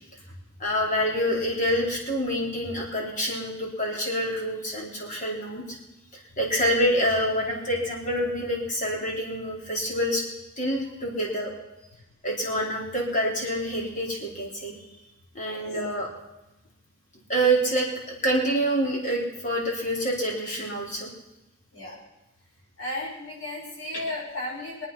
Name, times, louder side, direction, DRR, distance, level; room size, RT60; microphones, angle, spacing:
voice 1, 0.6-5.8 6.1-10.2 10.6-11.5 12.2-14.7 15.3-16.1 17.3-21.1, equal, 40° left, -2 dB, 4.4 m, -27 dB
voice 2, 22.8-24.9, left 1 dB, 75° left, -4 dB, 6.0 m, -34 dB
24.5 x 9.2 x 5.8 m, 0.98 s
head